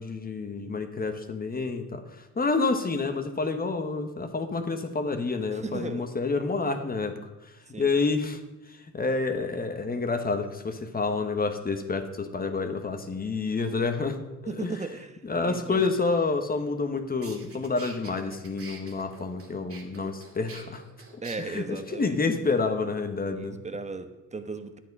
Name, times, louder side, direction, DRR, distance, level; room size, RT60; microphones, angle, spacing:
voice 1, 0.0-7.1 7.8-8.4 8.7-14.2 14.5-14.7 15.3-20.8 21.5-23.6, left 4 dB, 30° left, 6 dB, 1.2 m, -28 dB
voice 2, 5.5-6.1 7.7-7.9 14.5-15.9 21.2-22.2 23.3-24.8, right 4 dB, 25° right, 9 dB, 1.1 m, -36 dB
sound 1, 16.8-16.9 17.2-21.4, right 4 dB, 50° right, 2.4 m, -47 dB
11.0 x 9.0 x 5.3 m, 1.0 s
cardioid pair, 90°, 30 cm